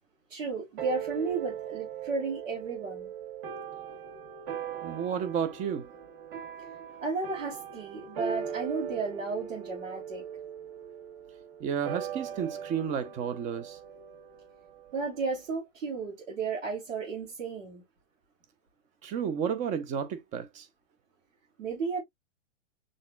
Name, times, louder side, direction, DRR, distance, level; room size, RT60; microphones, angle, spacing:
voice 1, 0.3-3.1 7.0-10.2 14.9-17.8 21.6-22.0, right 4 dB, 80° right, 3.4 m, -33 dB
sound 1, 0.8-15.5, right 7 dB, 45° right, 1.5 m, -40 dB
voice 2, 4.8-5.9 11.6-13.8 19.0-20.7, right 8 dB, 20° right, 0.6 m, -32 dB
6.4 x 3.6 x 2.2 m
hypercardioid pair, 135°, 38 cm